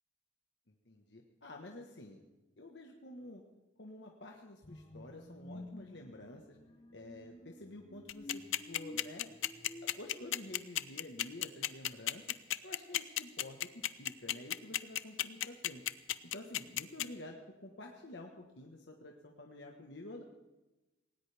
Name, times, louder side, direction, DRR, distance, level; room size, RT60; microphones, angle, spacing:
voice 1, 0.9-2.2 2.6-3.4 3.8-6.4 6.9-9.3 9.8-12.4 12.6-15.9 16.2-20.2, left 1 dB, 60° left, 2 dB, 1.4 m, -50 dB
sound 1, 4.6-10.6, left 1 dB, 25° left, 1.0 m, -51 dB
sound 2, 8.1-17.1, left 13 dB, 85° left, 0.6 m, -33 dB
18.5 x 18.5 x 3.5 m, 1.1 s
head